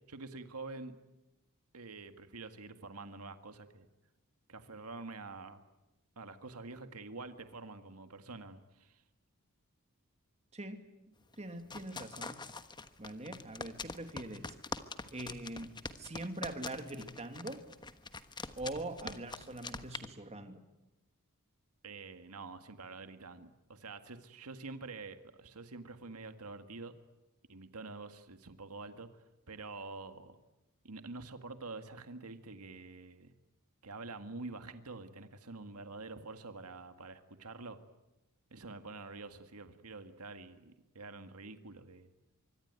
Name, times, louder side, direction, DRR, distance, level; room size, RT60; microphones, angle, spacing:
voice 1, 0.1-1.0 1.7-3.9 4.5-5.6 6.2-9.0 21.8-26.9 27.5-29.1 29.5-30.4 30.8-33.3 33.8-37.8 38.5-42.1, right 3 dB, 90° right, 8 dB, 1.9 m, -47 dB
sound 1, 11.2-20.1, left 3 dB, 20° left, 1.2 m, -44 dB
voice 2, 11.4-12.4 13.0-14.5 15.1-15.7 16.0-17.6 18.6-20.6, right 1 dB, 30° right, 7 dB, 2.4 m, -42 dB
25.0 x 24.5 x 9.6 m, 0.99 s
head